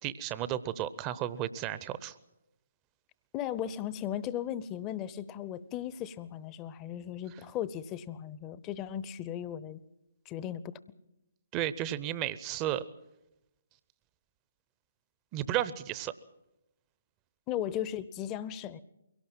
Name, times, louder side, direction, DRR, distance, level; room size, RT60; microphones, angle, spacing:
voice 1, 0.0-2.1 11.5-12.9 15.3-16.1, right 12 dB, 25° right, 16 dB, 0.7 m, -33 dB
voice 2, 3.3-9.8 10.3-10.7 17.5-18.8, left 10 dB, 20° left, 17 dB, 0.8 m, -36 dB
23.0 x 17.5 x 7.6 m, 0.91 s
figure-of-eight pair, 135°, 0 cm